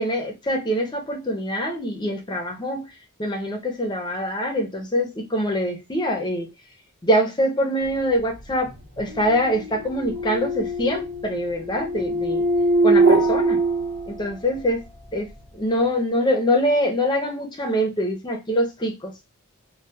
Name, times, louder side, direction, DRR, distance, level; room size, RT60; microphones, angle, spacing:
voice 1, 0.0-2.9 3.2-6.5 7.0-12.4 12.8-13.6 14.1-14.8 15.1-15.3 15.5-19.1, equal, 20° left, 0.6 m, -24 dB
sound 1, 8.1-14.6, right 2 dB, 55° right, 0.8 m, -23 dB
2.2 x 2.2 x 2.7 m
head